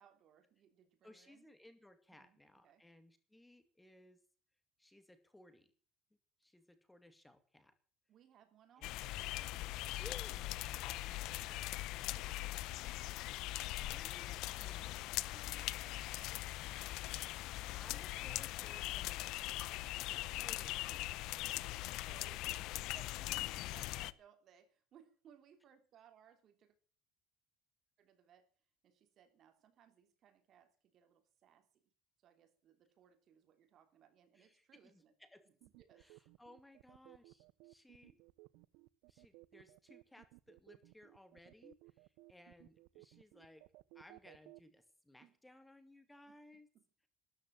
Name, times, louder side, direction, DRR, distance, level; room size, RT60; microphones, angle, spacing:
voice 1, 0.0-1.5 2.1-2.9 8.1-9.9 10.5-13.1 15.3-16.8 17.5-17.8 22.0-22.5 22.9-26.8 28.0-28.5 28.8-31.9 32.2-35.1 35.5-36.1 45.2-45.4 46.3-46.4 46.7-46.8, right 8 dB, 50° right, 8 dB, 3.1 m, -66 dB
voice 2, 1.0-4.2 4.8-5.7 6.4-7.8 8.8-9.0 10.0-10.5 13.8-15.0 17.8-19.6 20.1-21.2 22.0-22.2 22.5-22.6 34.3-35.5 36.0-38.2 39.1-43.6 43.9-46.7, left 1 dB, 10° left, 10 dB, 2.4 m, -61 dB
sound 1, 8.8-24.1, left 17 dB, 75° left, 0.7 m, -41 dB
sound 2, 35.6-44.6, right 22 dB, 85° right, 0.7 m, -60 dB
13.0 x 10.5 x 7.8 m, 0.42 s
cardioid pair, 115°, 0 cm